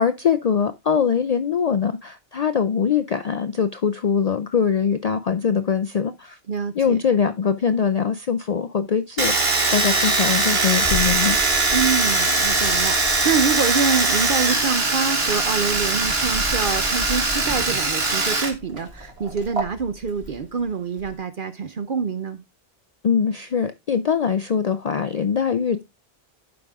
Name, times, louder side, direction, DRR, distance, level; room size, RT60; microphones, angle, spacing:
voice 1, 0.0-6.4 6.8-11.4 23.0-25.8, left 7 dB, 50° left, 0.5 m, -22 dB
voice 2, 6.5-7.0 11.7-22.4, right 5 dB, 60° right, 0.8 m, -26 dB
Domestic sounds home sounds, 9.2-18.5 18.8-19.6, right 3 dB, 75° right, 2.0 m, -21 dB
sound 1, 10.8-13.7 13.9-21.2, left 2 dB, 10° left, 2.0 m, -37 dB
11.5 x 5.2 x 3.5 m
omnidirectional pair, 1.0 m